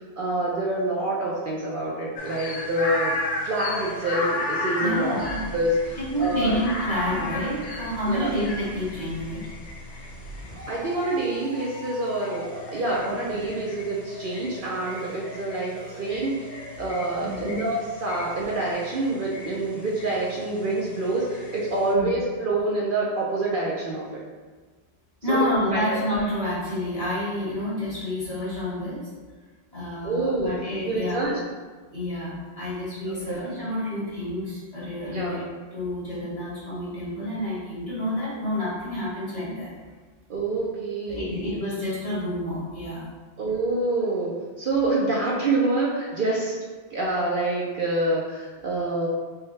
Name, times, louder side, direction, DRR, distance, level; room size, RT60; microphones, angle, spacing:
voice 1, 0.2-3.1 3.4-5.2 5.5-6.5 8.1-8.4 10.7-15.7 16.0-16.4 16.8-24.2 25.3-26.0 30.0-30.5 30.8-31.4 33.1-33.4 35.1-35.4 40.3-41.4 43.4-46.5 46.9-49.1, right 2 dB, 60° right, -4 dB, 0.7 m, -26 dB
sound 1, 2.2-21.9, left 2 dB, 60° left, 0.4 m, -35 dB
sound 2, 3.6-13.7 14.1-18.7, equal, 90° right, 1.2 m, -43 dB
voice 2, 4.8-5.4 6.1-9.4 13.0-13.1 17.2-17.6 21.9-22.1 25.2-29.0 29.7-31.3 31.9-35.4 35.7-39.7 41.1-43.0, left 1 dB, 40° left, -8 dB, 1.5 m, -29 dB
4.7 x 2.2 x 3.1 m, 1.4 s
omnidirectional pair, 1.1 m